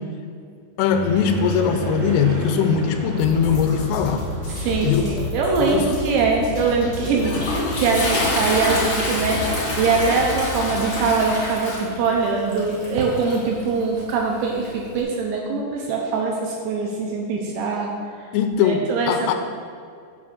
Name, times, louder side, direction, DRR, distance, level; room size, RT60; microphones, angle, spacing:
voice 1, 0.8-4.2 4.8-5.1 5.7-5.8 7.0-7.1 18.3-19.3, left 7 dB, 85° left, 7 dB, 3.1 m, -20 dB
sound 1, 0.9-9.5, right 2 dB, 60° right, 1.2 m, -32 dB
sound 2, 3.2-11.2, left 3 dB, 65° left, 2.0 m, -32 dB
voice 2, 4.5-9.4 9.8-17.9 18.6-19.3, right 4 dB, 80° right, -1 dB, 2.7 m, -22 dB
Toilet flush, 6.7-15.0, left 1 dB, 45° left, 2.0 m, -28 dB
8.1 x 6.1 x 6.1 m, 2.2 s
omnidirectional pair, 5.9 m